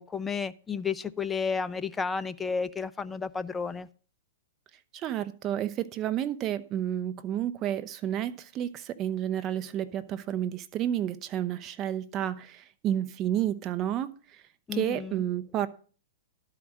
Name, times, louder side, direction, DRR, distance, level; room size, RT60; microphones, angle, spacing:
voice 1, 0.0-3.9 14.7-15.2, left 5 dB, 10° left, 0.5 m, -32 dB
voice 2, 4.9-14.1 14.7-15.7, right 11 dB, 30° right, 0.8 m, -30 dB
12.0 x 4.9 x 7.4 m
hypercardioid pair, 135°, 0 cm